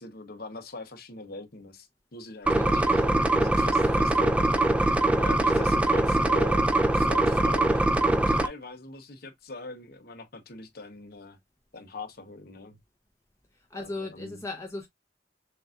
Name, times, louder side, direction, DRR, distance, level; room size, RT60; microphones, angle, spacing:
voice 1, 0.0-7.7 8.3-11.4 11.7-12.8 13.7-14.4, left 3 dB, 55° left, 0.9 m, -43 dB
voice 2, 2.5-3.1 13.5-14.9, left 2 dB, 15° left, 0.9 m, -37 dB
sound 1, 2.5-8.5, right 2 dB, 5° right, 0.4 m, -23 dB
6.7 x 2.6 x 2.4 m
head